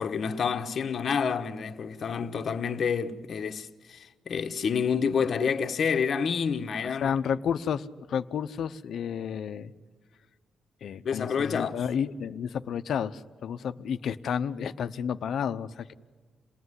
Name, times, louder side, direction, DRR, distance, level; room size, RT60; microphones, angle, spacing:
voice 1, 0.0-7.1 11.0-11.8, left 6 dB, 55° left, 1.2 m, -28 dB
voice 2, 7.0-9.7 10.8-15.9, left 7 dB, 70° left, 0.9 m, -31 dB
28.0 x 18.5 x 9.7 m
cardioid pair, 105°, 0 cm